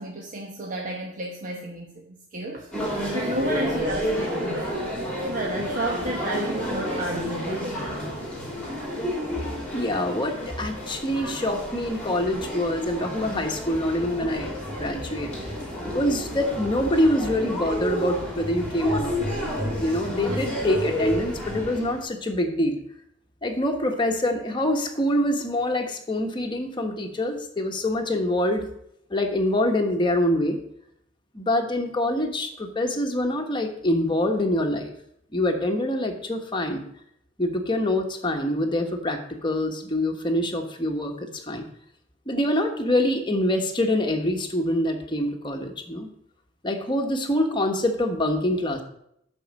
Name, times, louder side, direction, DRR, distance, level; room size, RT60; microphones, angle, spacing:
voice 1, 0.0-4.8 5.3-8.1 20.1-20.5 21.7-21.8, right 1 dB, 45° right, -1 dB, 1.1 m, -32 dB
sound 1, 2.7-22.0, equal, 5° left, 2.8 m, -30 dB
voice 2, 9.7-14.5 14.8-15.3 15.9-19.2 19.8-22.8 23.4-28.7 29.1-30.6 31.3-34.9 35.3-36.8 37.4-41.7 42.3-46.1 46.6-48.8, left 1 dB, 25° left, 3 dB, 1.2 m, -25 dB
11.5 x 4.6 x 6.4 m, 0.73 s
head